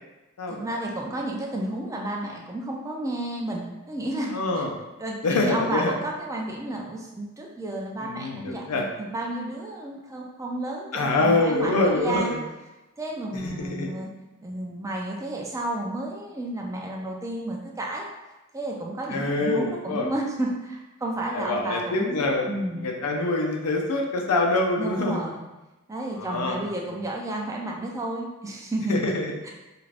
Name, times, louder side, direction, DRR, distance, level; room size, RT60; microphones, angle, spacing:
voice 1, 0.5-4.6 5.0-12.3 13.0-14.1 14.4-18.1 18.5-22.2 22.5-22.9 24.8-25.4 25.9-29.0 29.4-29.5, right 1 dB, 15° right, -1 dB, 0.3 m, -31 dB
voice 2, 4.3-4.7 5.2-6.0 8.0-8.9 10.9-12.4 13.3-13.9 19.1-20.1 21.3-22.5 22.8-25.2 26.2-26.6 26.9-27.0 28.9-29.3, left 2 dB, 90° left, 1 dB, 0.5 m, -25 dB
2.4 x 2.4 x 3.2 m, 1.0 s
head